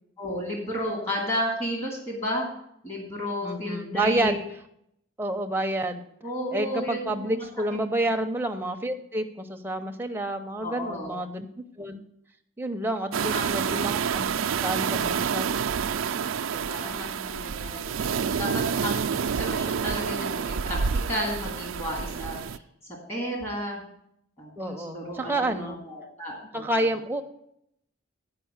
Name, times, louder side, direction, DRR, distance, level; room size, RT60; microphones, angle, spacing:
voice 1, 0.2-2.5 2.8-4.3 6.2-7.5 10.6-11.1 13.0-13.8 16.5-22.6 23.1-23.8 24.4-26.9, equal, 30° left, -1 dB, 2.6 m, -33 dB
voice 2, 3.4-4.4 5.2-6.0 6.5-11.5 11.8-12.0 12.6-14.3 14.6-15.5 24.6-25.8 26.5-27.2, right 1 dB, 10° right, 4 dB, 0.7 m, -29 dB
sound 1, 13.1-22.6, right 6 dB, 85° right, 0.4 m, -28 dB
10.0 x 5.3 x 7.9 m, 0.74 s
head